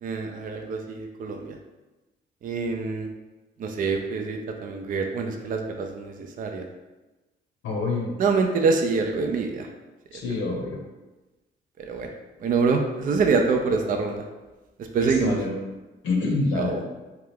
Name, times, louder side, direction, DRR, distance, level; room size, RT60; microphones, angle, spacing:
voice 1, 0.0-1.6 2.4-3.1 3.6-6.6 8.2-9.7 11.8-12.1 12.4-14.2 14.9-15.4 16.6-16.8, right 4 dB, 45° right, 4 dB, 0.4 m, -25 dB
voice 2, 7.6-8.1 10.1-10.8 14.9-15.6 16.0-16.8, left 3 dB, 70° left, -1 dB, 0.7 m, -27 dB
2.9 x 2.3 x 3.4 m, 1.1 s
cardioid pair, 90°, 20 cm